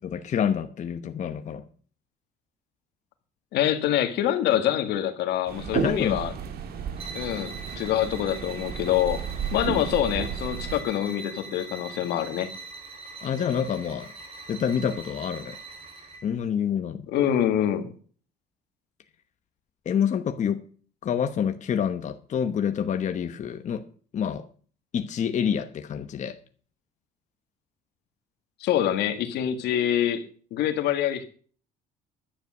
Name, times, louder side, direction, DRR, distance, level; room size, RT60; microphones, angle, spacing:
voice 1, 0.1-1.6 5.7-6.2 13.2-14.1 14.5-15.6 16.2-17.1 19.8-20.6 21.0-23.8 24.1-24.5 24.9-26.4, left 8 dB, 45° left, 1.0 m, -27 dB
voice 2, 3.5-6.3 7.1-9.2 9.5-12.5 17.1-17.9 28.6-30.2 30.5-31.2, left 11 dB, 80° left, 1.8 m, -25 dB
sound 1, 5.5-10.8, right 7 dB, 65° right, 2.1 m, -33 dB
sound 2, 6.9-16.3, right 3 dB, 35° right, 4.3 m, -42 dB
11.5 x 9.4 x 6.2 m
cardioid pair, 110°, 17 cm